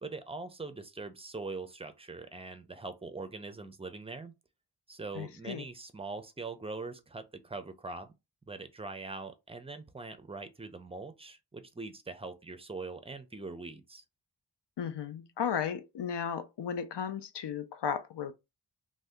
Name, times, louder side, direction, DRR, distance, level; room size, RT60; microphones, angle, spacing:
voice 1, 0.0-4.3 4.9-8.1 8.5-14.0, right 3 dB, 15° right, 0.5 m, -42 dB
voice 2, 5.1-5.6 14.8-18.3, left 7 dB, 65° left, 0.5 m, -35 dB
2.7 x 2.2 x 3.4 m
wide cardioid pair, 55°, 44 cm